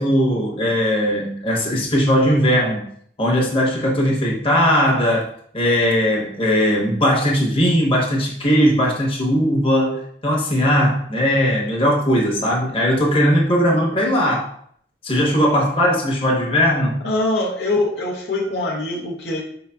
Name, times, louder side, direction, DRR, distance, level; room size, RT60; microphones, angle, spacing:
voice 1, 0.0-2.8 3.2-5.3 5.5-14.4 15.0-17.0, equal, 30° left, -3 dB, 0.9 m, -18 dB
voice 2, 17.0-19.4, left 2 dB, 70° left, -2 dB, 0.7 m, -23 dB
4.7 x 3.9 x 2.3 m, 0.64 s
head